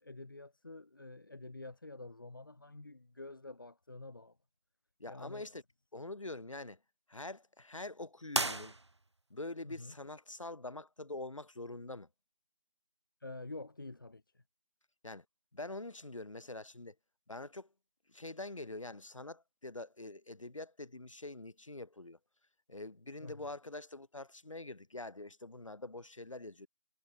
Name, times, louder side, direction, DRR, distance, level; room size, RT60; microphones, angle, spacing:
voice 1, 0.0-4.4 5.1-5.5 9.6-9.9 13.2-14.4 23.2-23.4, left 2 dB, 30° left, 1.3 m, -48 dB
voice 2, 5.0-5.6 5.9-6.8 7.1-8.7 9.3-12.1 15.0-15.2 15.5-16.9 17.3-17.7 18.1-22.2 22.7-26.7, left 2 dB, 50° left, 3.4 m, -45 dB
sound 1, 8.3-9.3, right 2 dB, 45° right, 0.6 m, -35 dB
figure-of-eight pair, 170°, 20 cm